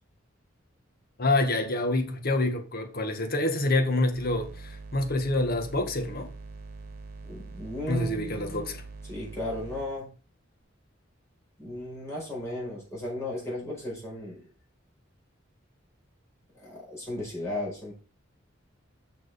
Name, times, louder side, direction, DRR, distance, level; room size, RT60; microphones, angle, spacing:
voice 1, 1.2-6.3 7.9-8.8, left 2 dB, 50° left, 1.8 m, -27 dB
sound 1, 4.1-9.9, right 3 dB, 55° right, 1.5 m, -43 dB
voice 2, 7.3-8.8 9.1-10.1 11.6-14.5 16.5-17.9, left 1 dB, 15° left, 4.8 m, -35 dB
6.7 x 6.4 x 5.3 m
head